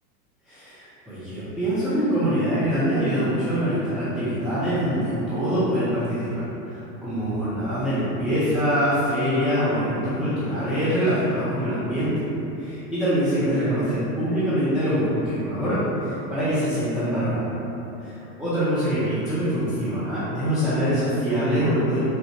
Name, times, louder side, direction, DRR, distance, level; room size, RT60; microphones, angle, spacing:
voice 1, 0.5-6.4 6.7-12.2 12.6-17.5 18.0-22.0, equal, ahead, -13 dB, 0.4 m, -24 dB
3.6 x 2.1 x 2.9 m, 3.0 s
hypercardioid pair, 100°, 48 cm